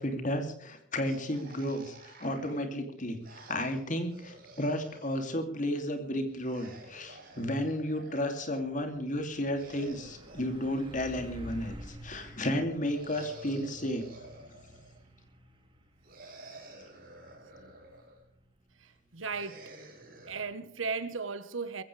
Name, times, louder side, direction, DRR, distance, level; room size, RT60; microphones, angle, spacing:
voice 1, 0.0-1.9 2.2-3.2 3.5-14.1, left 1 dB, 40° left, 2.9 m, -33 dB
sound 1, 1.0-5.3 6.3-8.5 9.3-11.7 12.8-15.1 16.0-18.2 19.3-20.4, right 2 dB, 45° right, 6.4 m, -52 dB
Truck, 6.9-21.1, equal, 25° right, 2.6 m, -52 dB
voice 2, 18.8-19.7 20.3-21.8, right 4 dB, 85° right, 1.4 m, -36 dB
21.5 x 16.0 x 3.4 m
head